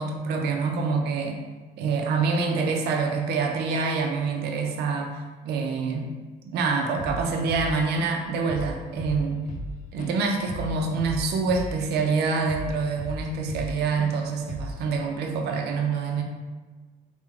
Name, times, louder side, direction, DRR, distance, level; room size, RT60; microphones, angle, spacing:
voice 1, 0.0-1.4 1.8-5.2 5.4-6.1 6.5-9.4 9.9-16.2, right 4 dB, 75° right, 2 dB, 0.5 m, -26 dB
Drum kit / Drum, 7.0-7.2 7.5-8.2 8.5-8.7 9.0-12.2 12.5-13.7 14.0-14.2 14.5-14.8, left 1 dB, 50° left, 0.5 m, -35 dB
3.5 x 2.2 x 3.3 m, 1.3 s
cardioid pair, 110°, 17 cm